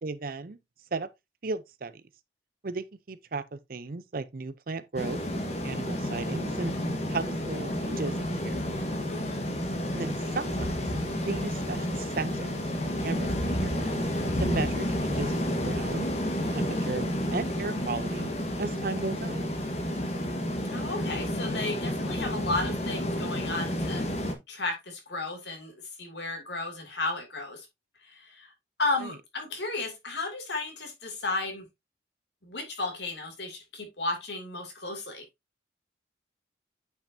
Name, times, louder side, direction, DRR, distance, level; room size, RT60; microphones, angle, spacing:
voice 1, 0.0-0.6 0.9-1.1 1.4-2.0 2.6-5.2 5.6-6.7 7.1-8.6 9.9-10.9 11.3-14.0 14.4-16.1 16.5-18.3 18.6-19.4 29.0-29.1, right 3 dB, 50° right, 0.6 m, -35 dB
sound 1, 5.0-24.3, equal, 35° left, 1.4 m, -30 dB
voice 2, 9.1-9.5 20.7-24.1 24.5-27.7 28.0-28.5 28.8-31.6 32.4-35.2, left 2 dB, 65° left, 2.6 m, -34 dB
9.0 x 5.7 x 2.7 m
head